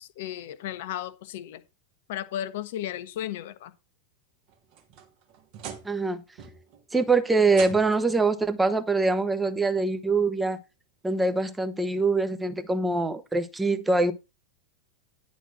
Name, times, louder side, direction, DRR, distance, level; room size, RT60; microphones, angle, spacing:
voice 1, 0.0-1.6 2.1-3.7, left 11 dB, 55° left, 0.9 m, -34 dB
sound 1, 4.5-6.1 6.4-6.8 7.5-8.2 9.4-9.5 10.1-10.2 11.8-11.9, right 7 dB, 45° right, 1.6 m, -42 dB
voice 2, 5.8-6.2 6.9-10.6 11.0-14.1, right 3 dB, 10° right, 0.9 m, -24 dB
10.0 x 4.1 x 5.9 m
figure-of-eight pair, 90°, 0 cm